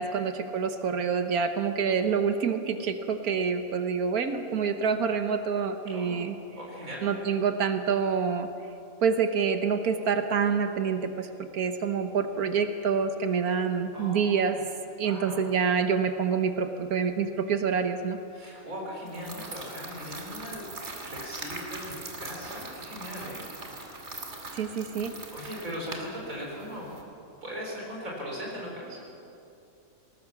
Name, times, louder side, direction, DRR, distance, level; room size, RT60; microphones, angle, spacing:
voice 1, 0.0-6.4 7.0-8.5 9.0-11.3 11.5-14.6 15.0-18.2 24.5-25.2, right 6 dB, 80° right, 8 dB, 1.5 m, -27 dB
voice 2, 5.9-7.0 13.9-14.6 15.0-15.5 18.3-20.6 21.1-23.4 24.4-24.7 25.3-26.9 27.4-29.0, equal, 65° right, -2 dB, 4.8 m, -39 dB
sound 1, 19.1-27.0, right 2 dB, 50° right, 2.7 m, -41 dB
19.5 x 19.5 x 7.2 m, 2.7 s
omnidirectional pair, 1.6 m